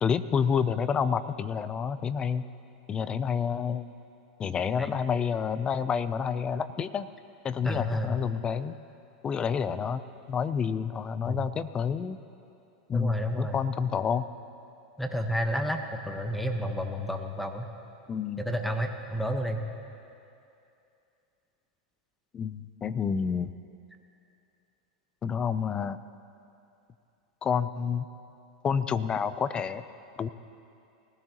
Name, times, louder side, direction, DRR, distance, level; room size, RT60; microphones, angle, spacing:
voice 1, 0.0-2.4 2.9-3.8 4.4-7.1 7.4-8.7 9.2-10.0 10.3-12.2 12.9-14.3 18.1-18.4 22.3-23.5 25.2-26.0 27.4-28.1 28.6-29.8 30.2-30.3, left 6 dB, 25° left, 14 dB, 0.5 m, -29 dB
voice 2, 7.6-8.2 11.3-11.4 12.9-13.6 15.0-17.6 18.5-19.6, equal, ahead, 5 dB, 1.1 m, -30 dB
19.5 x 15.0 x 3.0 m, 2.7 s
hypercardioid pair, 105°, 3 cm